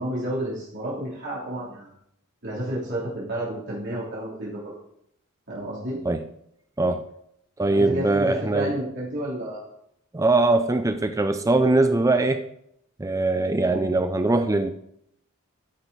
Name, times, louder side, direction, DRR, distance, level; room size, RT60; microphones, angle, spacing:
voice 1, 0.0-1.9 2.4-4.7 5.5-6.0 7.7-9.6 13.7-13.9, right 1 dB, 55° right, -7 dB, 3.1 m, -31 dB
voice 2, 6.8-7.1 7.6-8.7 10.1-12.4 13.0-14.7, right 2 dB, 15° right, 9 dB, 0.4 m, -21 dB
13.5 x 6.2 x 4.1 m, 0.75 s
head